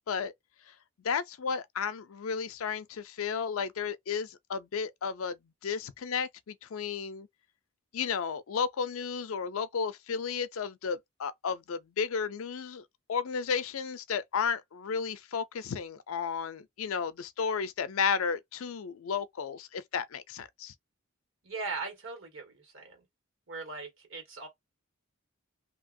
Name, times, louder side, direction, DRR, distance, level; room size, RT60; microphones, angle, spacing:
voice 1, 1.0-5.4 5.6-7.3 7.9-12.8 13.1-20.7, left 6 dB, 75° left, 0.4 m, -33 dB
voice 2, 21.4-23.0 23.5-24.5, right 4 dB, 65° right, 1.6 m, -39 dB
2.9 x 2.7 x 2.6 m
head